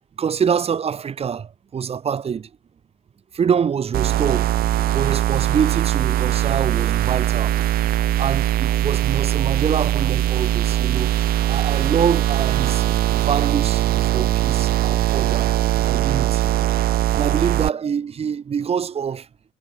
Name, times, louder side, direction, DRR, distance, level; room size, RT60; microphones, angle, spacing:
voice 1, 0.2-2.5 3.3-4.5 4.9-7.6 8.2-11.1 11.5-12.9 13.1-15.5 15.8-19.3, right 7 dB, 35° right, 2.8 m, -25 dB
sound 1, 3.9-17.7, right 14 dB, 60° right, 0.5 m, -20 dB
cardioid pair, 140°, 17 cm